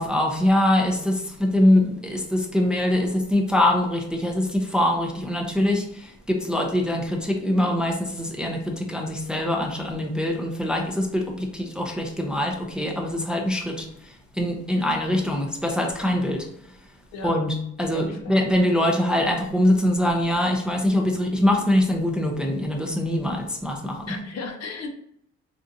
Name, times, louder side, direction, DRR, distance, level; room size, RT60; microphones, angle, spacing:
voice 1, 0.0-16.8 17.2-24.1, left 1 dB, 5° right, 1 dB, 0.5 m, -23 dB
voice 2, 17.8-18.4 24.1-24.9, left 3 dB, 60° left, 4 dB, 0.6 m, -35 dB
3.8 x 2.5 x 2.6 m, 0.73 s
cardioid pair, 90°, 30 cm